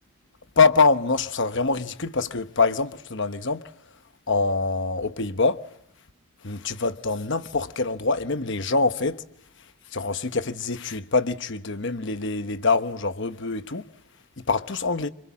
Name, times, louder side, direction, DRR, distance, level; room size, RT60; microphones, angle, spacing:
voice 1, 0.6-3.6 4.3-5.6 6.4-9.2 9.9-13.8 14.5-15.1, left 4 dB, 55° left, 1.1 m, -24 dB
28.0 x 26.5 x 7.5 m
head